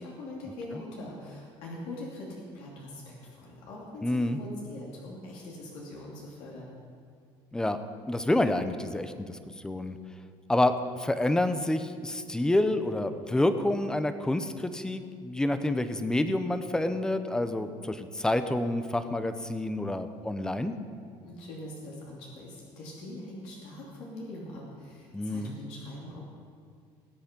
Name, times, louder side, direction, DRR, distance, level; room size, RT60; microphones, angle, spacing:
voice 1, 0.0-6.7 21.2-26.2, left 1 dB, 80° left, -4 dB, 3.0 m, -42 dB
voice 2, 4.0-4.4 7.5-7.8 8.1-9.4 9.6-10.0 10.5-20.7 25.1-25.5, left 1 dB, 5° left, 10 dB, 0.7 m, -28 dB
20.0 x 8.4 x 5.3 m, 2.2 s
cardioid pair, 135°, 11 cm